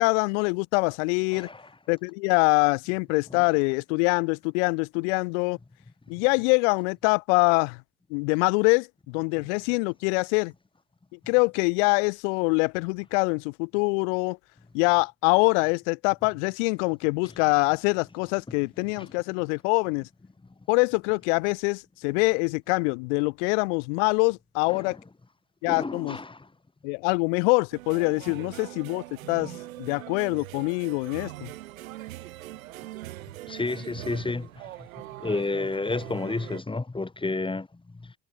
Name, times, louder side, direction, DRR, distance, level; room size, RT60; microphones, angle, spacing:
voice 1, 0.0-1.5 1.9-5.6 6.1-7.8 8.1-10.5 11.1-14.4 14.7-20.1 20.7-25.0 25.6-26.2 26.8-29.5 29.8-31.5, left 34 dB, 55° left, 0.6 m, -24 dB
voice 2, 1.3-1.8 3.3-3.6 18.5-18.6 18.9-19.1 24.7-25.1 25.7-26.5 28.3-28.4 29.3-29.6 33.5-34.9 35.2-38.1, left 3 dB, 10° left, 2.7 m, -32 dB
sound 1, 27.7-36.6, right 16 dB, 70° right, 2.8 m, -42 dB
figure-of-eight pair, 65°, 42 cm